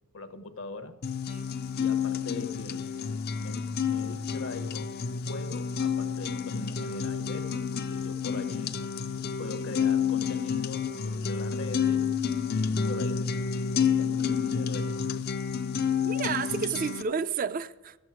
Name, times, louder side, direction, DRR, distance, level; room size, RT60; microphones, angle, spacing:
voice 1, 0.1-1.0 1.7-2.9 3.4-4.9 5.2-8.7 9.4-12.1 12.5-13.4 13.7-15.1, left 3 dB, 65° left, 1.0 m, -41 dB
sound 1, 1.0-17.0, left 6 dB, 45° left, 0.5 m, -29 dB
voice 2, 16.0-18.0, right 6 dB, 40° right, 0.3 m, -31 dB
14.0 x 7.9 x 5.8 m
head